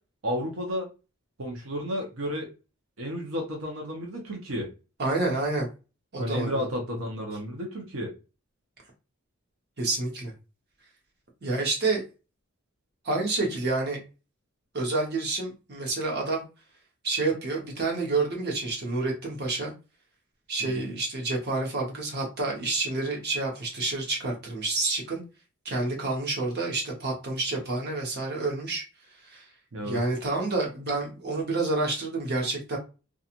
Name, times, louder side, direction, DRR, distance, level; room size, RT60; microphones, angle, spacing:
voice 1, 0.2-0.9 1.4-2.5 3.0-4.7 6.2-8.1 20.6-20.9 29.7-30.0, equal, 80° right, 1 dB, 0.8 m, -32 dB
voice 2, 5.0-5.7 6.1-6.6 9.8-10.3 11.4-12.0 13.0-14.0 14.7-16.5 17.0-19.7 20.5-25.2 25.6-28.8 29.2-29.5 29.8-32.8, right 3 dB, 50° right, 0 dB, 1.0 m, -28 dB
2.9 x 2.4 x 2.5 m, 0.30 s
head